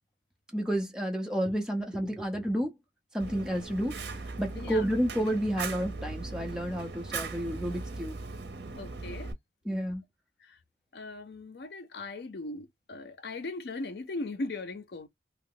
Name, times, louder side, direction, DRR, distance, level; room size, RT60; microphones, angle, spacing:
voice 1, 0.5-2.8 3.1-4.0 4.4-8.2 9.6-10.0, equal, 5° right, 0.7 m, -30 dB
Fire, 3.2-9.3, right 3 dB, 65° right, 0.7 m, -39 dB
voice 2, 8.8-9.3 10.4-10.6 10.9-15.1, left 2 dB, 60° left, 0.5 m, -38 dB
2.8 x 2.0 x 3.8 m
head